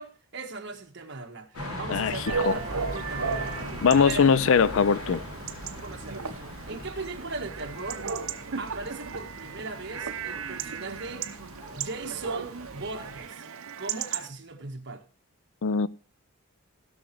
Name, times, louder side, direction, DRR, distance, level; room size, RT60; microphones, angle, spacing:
voice 1, 0.0-3.6 3.9-4.4 5.8-6.3 6.7-8.1 8.6-11.3 11.7-13.4 13.8-15.0, right 3 dB, 50° right, 1.6 m, -38 dB
sound 1, 1.5-13.3, equal, 80° left, 2.8 m, -41 dB
voice 2, 1.9-2.6 3.8-5.2 15.6-15.9, left 6 dB, 60° left, 0.4 m, -21 dB
Chatter / Bark / Livestock farm animals working animals, 2.1-14.3, right 6 dB, 70° right, 0.8 m, -36 dB
Vehicle horn car horn honking, 2.2-7.3, right 4 dB, 25° right, 1.5 m, -42 dB
16.5 x 6.2 x 4.6 m
head